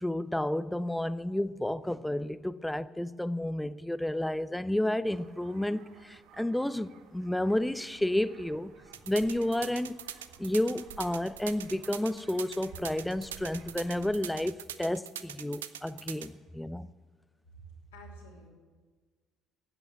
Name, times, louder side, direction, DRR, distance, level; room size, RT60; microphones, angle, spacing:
voice 1, 0.0-8.7 9.1-10.0 10.4-16.9, left 1 dB, 5° left, 0.5 m, -31 dB
sound 1, 5.1-14.3, right 5 dB, 65° right, 1.1 m, -55 dB
sound 2, 8.9-16.3, right 10 dB, 80° right, 0.4 m, -41 dB
voice 2, 17.9-18.5, right 1 dB, 80° left, 3.1 m, -49 dB
10.5 x 9.1 x 9.7 m
figure-of-eight pair, 50°, 0 cm